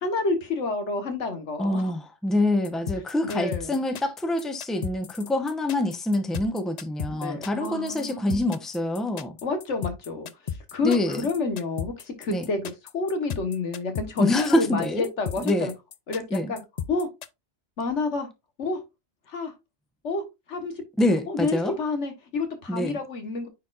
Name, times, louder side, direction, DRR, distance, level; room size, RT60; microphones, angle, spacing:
voice 1, 0.0-1.9 3.3-3.8 7.1-8.5 9.4-12.6 12.9-15.7 16.1-16.6 16.9-17.1 17.8-18.3 18.6-18.8 19.3-19.5 20.0-20.2 20.5-20.7 21.3-23.5, left 3 dB, 85° left, 1.7 m, -29 dB
voice 2, 1.6-9.4 10.8-11.3 12.3-12.5 14.2-15.1 15.4-15.7 16.3-16.5 21.0-21.7 22.7-23.0, left 1 dB, ahead, 0.8 m, -26 dB
sound 1, 2.6-17.3, left 8 dB, 60° left, 0.4 m, -35 dB
9.3 x 4.2 x 2.4 m
omnidirectional pair, 1.2 m